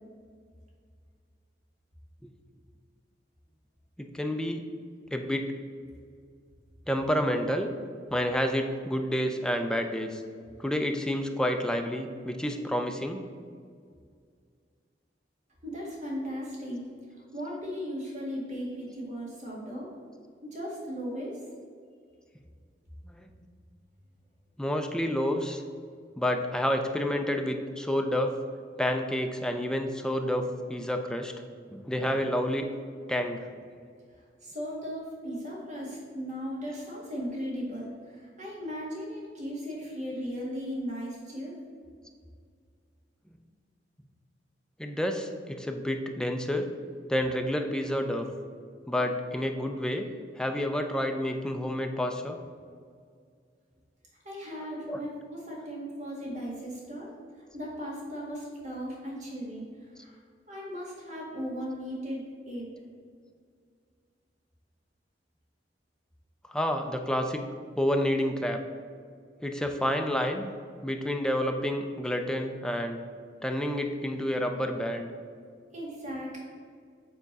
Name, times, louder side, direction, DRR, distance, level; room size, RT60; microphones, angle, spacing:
voice 1, 4.0-4.6 5.1-5.5 6.9-7.7 8.1-10.2 10.6-13.3 23.1-23.3 24.6-25.6 26.2-28.4 28.8-30.4 30.7-31.3 31.7-32.7 33.1-33.5 44.8-46.7 47.1-48.3 48.9-50.1 50.4-52.4 54.9-55.0 66.5-67.4 67.8-68.6 69.4-70.5 70.8-73.0 73.4-75.1, equal, 5° left, 5 dB, 0.5 m, -29 dB
voice 2, 15.6-16.9 17.3-19.9 20.5-21.4 34.4-41.6 54.2-57.1 57.5-59.6 60.0-60.2 60.5-62.7 75.7-76.4, equal, 45° right, -4 dB, 1.9 m, -37 dB
8.0 x 3.6 x 5.3 m, 2.1 s
head